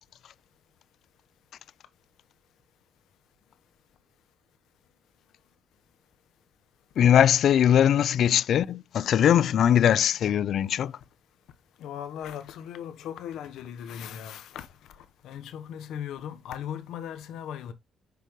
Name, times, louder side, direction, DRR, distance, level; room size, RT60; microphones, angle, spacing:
voice 1, 7.0-10.9, left 9 dB, 70° left, 0.4 m, -21 dB
voice 2, 11.8-14.7 15.0-17.7, left 9 dB, 85° left, 1.0 m, -38 dB
6.7 x 5.1 x 3.1 m
cardioid pair, 90°, 0 cm